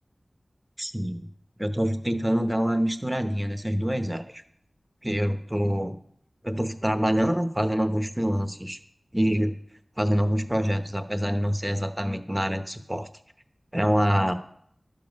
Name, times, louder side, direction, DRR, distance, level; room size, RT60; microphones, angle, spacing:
voice 1, 0.8-1.3 1.6-4.4 5.0-6.0 6.4-8.8 9.1-9.5 10.0-13.1 13.7-14.3, equal, 10° right, 8 dB, 0.9 m, -25 dB
12.0 x 7.2 x 5.3 m, 0.66 s
wide cardioid pair, 65°, 0 cm